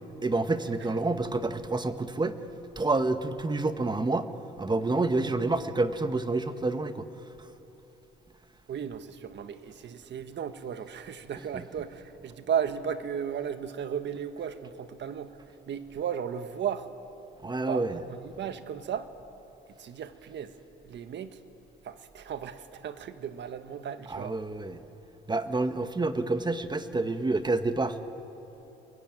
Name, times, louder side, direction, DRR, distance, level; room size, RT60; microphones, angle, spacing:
voice 1, 0.2-2.4 2.8-4.3 4.6-7.1 7.4-7.5 17.4-18.0 24.1-24.8 25.3-28.0, right 3 dB, 20° right, 10 dB, 1.4 m, -28 dB
voice 2, 8.7-16.9 17.7-19.1 19.8-20.6 20.8-21.4 21.8-24.4, right 8 dB, 65° right, 10 dB, 1.5 m, -35 dB
29.5 x 22.0 x 9.2 m, 3.0 s
cardioid pair, 90°, 20 cm